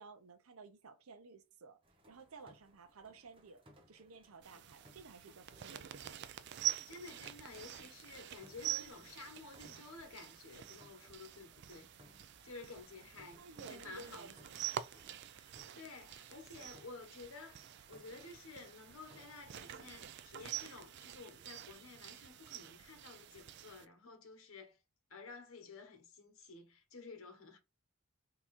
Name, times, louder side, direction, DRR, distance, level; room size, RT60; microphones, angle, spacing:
voice 1, 0.0-1.8 2.1-6.2 13.4-14.8, right 3 dB, 80° right, 0.7 m, -55 dB
sound 1, 1.8-20.3, right 1 dB, 25° right, 0.8 m, -65 dB
sound 2, 4.4-23.9, right 12 dB, 50° right, 0.3 m, -46 dB
voice 2, 6.8-14.3 15.4-24.8 25.1-27.6, left 3 dB, 70° left, 1.2 m, -53 dB
3.6 x 2.9 x 4.2 m
head